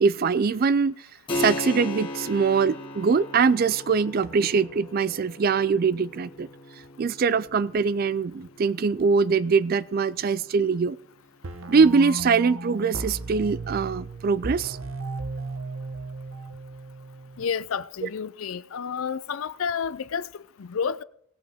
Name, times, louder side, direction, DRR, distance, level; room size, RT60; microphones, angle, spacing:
voice 1, 0.0-0.9 1.4-6.5 7.0-11.0 11.7-14.8, right 5 dB, 45° right, 0.4 m, -22 dB
Keyboard (musical), 1.3-11.5, left 2 dB, 25° left, 1.9 m, -38 dB
sound 1, 11.4-17.4, right 2 dB, 75° right, 1.0 m, -35 dB
voice 2, 17.4-21.0, left 6 dB, 75° left, 0.5 m, -30 dB
18.0 x 8.6 x 3.5 m
head